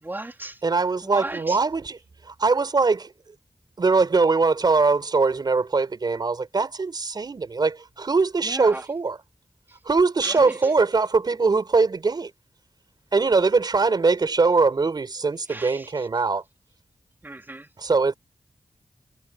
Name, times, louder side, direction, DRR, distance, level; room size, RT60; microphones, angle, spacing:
voice 1, 0.0-0.6 1.0-1.6 8.4-8.8 9.7-9.8 10.2-10.7 15.5-16.1 17.2-17.7, right 2 dB, 25° right, 2.6 m, -36 dB
voice 2, 0.6-2.0 2.3-3.1 3.8-9.2 9.8-12.3 13.1-16.4 17.8-18.1, right 4 dB, 60° right, 4.7 m, -22 dB
cardioid pair, 50°, 8 cm